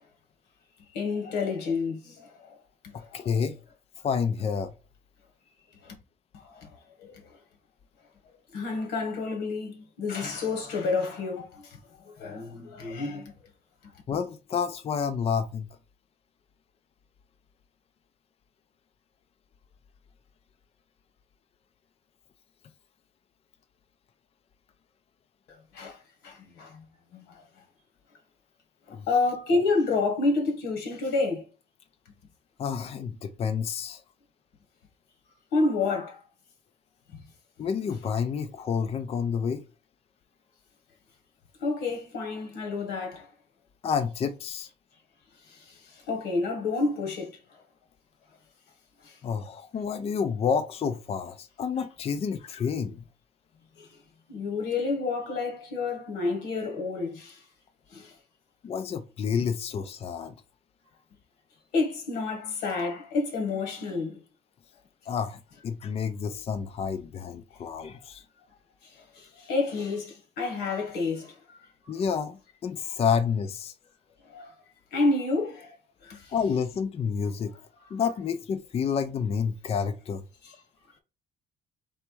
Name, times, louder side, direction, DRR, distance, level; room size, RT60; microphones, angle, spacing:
voice 1, 0.9-2.3 3.2-3.3 5.9-6.0 6.5-6.7 7.0-7.1 8.5-11.6 12.2-13.3 25.7-26.0 26.2-26.8 27.1-27.2 29.1-31.4 35.5-36.2 41.6-43.3 46.1-47.3 54.3-57.4 57.9-58.1 61.7-64.1 69.2-71.3 74.3-74.5 74.9-75.7 76.0-76.2 80.4-80.5, left 3 dB, 85° left, 1.4 m, -29 dB
voice 2, 2.9-3.6 4.0-4.7 14.1-15.7 28.9-29.1 32.6-34.0 37.6-39.6 43.8-44.7 49.2-53.0 58.6-60.3 65.1-68.2 71.9-73.7 76.3-77.5 77.9-80.2, left 6 dB, 35° left, 0.5 m, -29 dB
3.5 x 3.1 x 4.4 m
cardioid pair, 110°, 17 cm